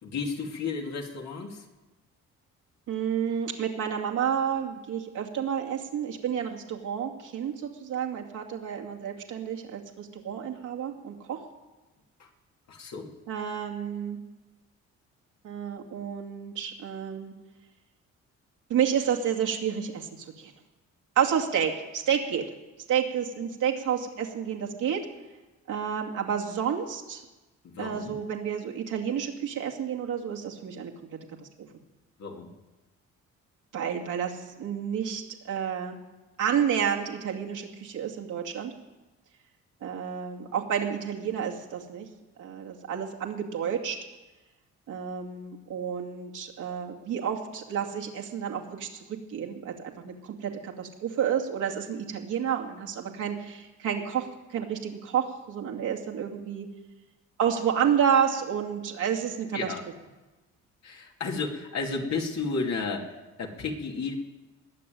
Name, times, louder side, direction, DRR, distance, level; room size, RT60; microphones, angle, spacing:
voice 1, 0.0-1.7 12.2-12.3 12.7-13.1 27.6-28.1 32.2-32.5 59.5-59.8 60.8-64.2, left 4 dB, 60° left, 1 dB, 2.7 m, -33 dB
voice 2, 2.9-11.4 13.3-14.2 15.4-17.3 18.7-20.5 21.2-22.4 22.9-25.0 25.7-27.2 27.8-30.9 31.4-31.5 33.7-36.0 36.4-38.7 39.8-42.1 42.4-44.0 44.9-56.7 57.4-59.7, right 8 dB, 80° right, 0 dB, 2.4 m, -30 dB
20.0 x 7.0 x 9.4 m, 1.1 s
cardioid pair, 90°, 30 cm